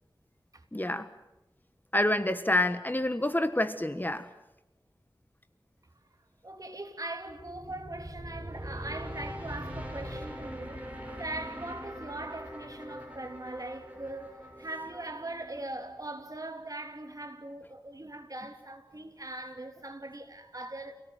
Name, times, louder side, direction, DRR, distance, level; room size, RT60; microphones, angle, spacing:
voice 1, 0.7-1.1 1.9-4.3, left 1 dB, 25° left, 1.5 m, -27 dB
voice 2, 6.4-20.9, right 2 dB, 45° right, 3.1 m, -41 dB
sound 1, 7.3-16.4, equal, 20° right, 6.8 m, -43 dB
28.5 x 18.0 x 9.5 m
wide cardioid pair, 50°, 8 cm